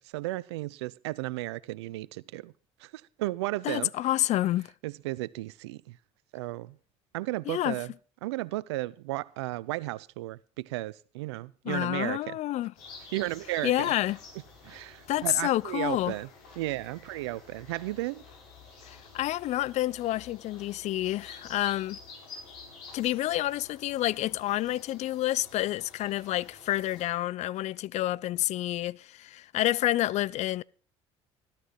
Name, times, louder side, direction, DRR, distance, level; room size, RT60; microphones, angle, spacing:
voice 1, 0.0-2.5 2.8-3.9 4.8-6.0 6.3-6.8 7.1-7.9 8.2-12.4 13.1-13.9 14.6-16.3 16.6-18.2, right 19 dB, 85° right, 0.5 m, -34 dB
voice 2, 3.6-4.7 7.5-7.8 11.7-12.7 13.6-14.2 15.1-16.1 18.9-22.0 22.9-30.6, left 15 dB, 55° left, 0.5 m, -29 dB
sound 1, 12.7-27.1, left 4 dB, 75° left, 7.2 m, -50 dB
13.0 x 13.0 x 4.2 m
hypercardioid pair, 70°, 14 cm